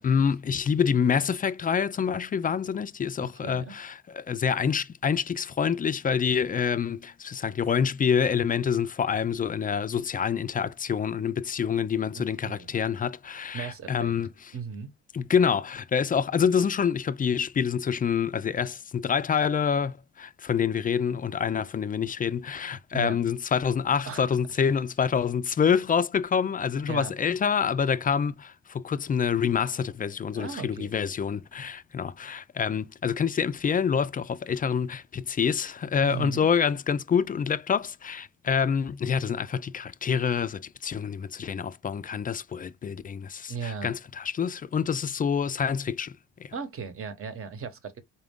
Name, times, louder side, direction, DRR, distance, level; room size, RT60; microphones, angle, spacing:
voice 1, 0.0-14.5 15.1-46.1 46.4-46.5, left 7 dB, 30° left, 0.4 m, -27 dB
voice 2, 3.4-3.7 12.2-12.8 13.5-14.1 14.5-14.9 22.9-23.2 24.0-24.2 26.9-27.1 30.3-31.0 36.0-36.5 43.5-43.9 46.5-48.0, right 6 dB, 45° right, 1.0 m, -36 dB
4.2 x 2.4 x 3.6 m
cardioid pair, 90°, 30 cm